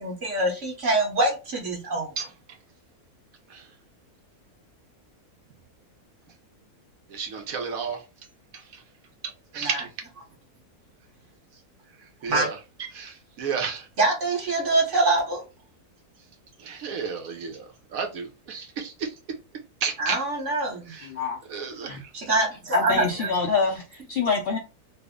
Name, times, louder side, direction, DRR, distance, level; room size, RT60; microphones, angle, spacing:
voice 1, 0.0-2.1 9.6-9.8 12.3-12.5 14.0-15.4 20.0-21.1 22.1-23.3, right 2 dB, 55° right, 1.5 m, -25 dB
voice 2, 7.1-8.0 8.5-8.8 9.5-9.9 12.2-12.5 12.9-13.9 16.6-19.1 19.8-20.2 20.9-21.1 21.5-22.1, right 6 dB, 70° right, 1.1 m, -32 dB
voice 3, 21.1-21.4 21.8-22.0 22.7-24.6, left 5 dB, 60° left, 0.6 m, -26 dB
3.3 x 2.0 x 3.5 m
omnidirectional pair, 1.6 m